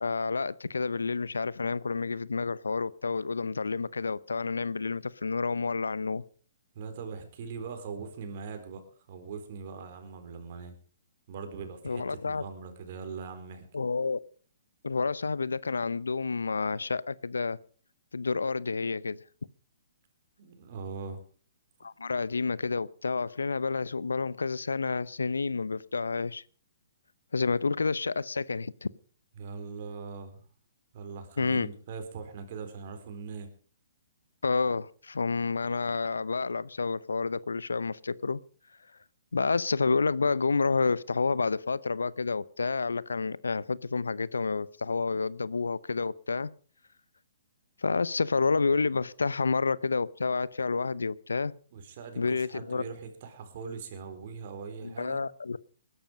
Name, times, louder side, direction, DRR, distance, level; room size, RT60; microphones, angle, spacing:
voice 1, 0.0-6.2 11.8-12.4 13.7-14.2 14.8-17.6 18.1-19.2 21.8-26.4 27.3-28.9 31.4-31.7 34.4-38.4 39.3-46.5 47.8-51.5 52.2-52.8 54.8-55.6, left 4 dB, 85° left, 0.7 m, -29 dB
voice 2, 6.7-8.8 9.1-10.7 11.3-13.6 20.4-21.2 29.4-30.4 30.9-33.5 51.7-55.2, right 5 dB, 50° right, 4.2 m, -41 dB
20.0 x 11.5 x 5.2 m
hypercardioid pair, 130°, 0 cm